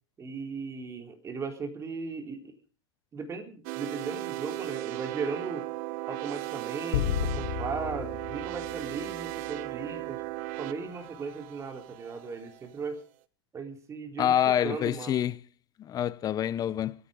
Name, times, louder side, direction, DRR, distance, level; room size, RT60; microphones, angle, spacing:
voice 1, 0.2-2.6 3.1-5.7 6.1-10.2 10.6-13.0 13.5-15.2, right 4 dB, 20° right, 3.7 m, -37 dB
sound 1, 3.6-12.6, right 19 dB, 50° right, 1.2 m, -37 dB
sound 2, 6.9-9.5, left 10 dB, 70° left, 3.1 m, -33 dB
voice 2, 14.2-15.4 15.8-16.9, left 10 dB, 25° left, 1.0 m, -26 dB
26.0 x 10.0 x 5.2 m
hypercardioid pair, 120°, 14 cm